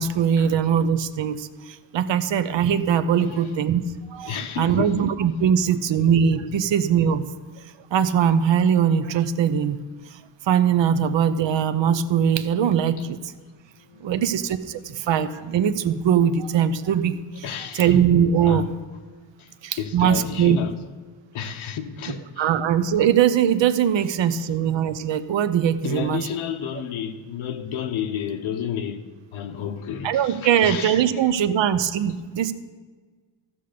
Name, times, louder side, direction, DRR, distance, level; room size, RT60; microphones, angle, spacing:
voice 1, 0.0-3.8 4.1-7.2 7.6-7.7 7.9-9.8 10.1-10.2 10.5-13.3 14.0-17.5 17.7-18.7 19.6-20.6 22.4-26.3 30.0-32.5, right 8 dB, 65° right, 0.7 m, -21 dB
voice 2, 3.2-3.5 4.2-5.1 6.5-6.6 13.0-13.1 13.8-14.4 17.4-18.7 19.4-20.8 21.3-22.6 24.0-24.1 24.3-24.4 25.8-29.1 29.3-31.3, left 8 dB, 80° left, 0.9 m, -32 dB
14.5 x 6.9 x 5.1 m
cardioid pair, 135°, 48 cm